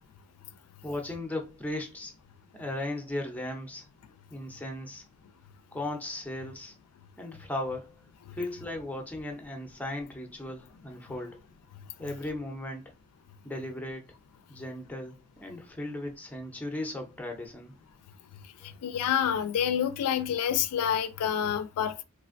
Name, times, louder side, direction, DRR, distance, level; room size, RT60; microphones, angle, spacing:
voice 1, 0.8-2.1 2.5-3.9 4.3-5.0 5.7-6.7 7.2-7.9 8.4-11.4 12.0-12.8 13.4-14.1 14.5-17.7 18.6-18.7, left 1 dB, 5° left, 0.5 m, -36 dB
voice 2, 18.8-22.0, left 9 dB, 80° left, 0.3 m, -28 dB
3.2 x 2.5 x 2.5 m
head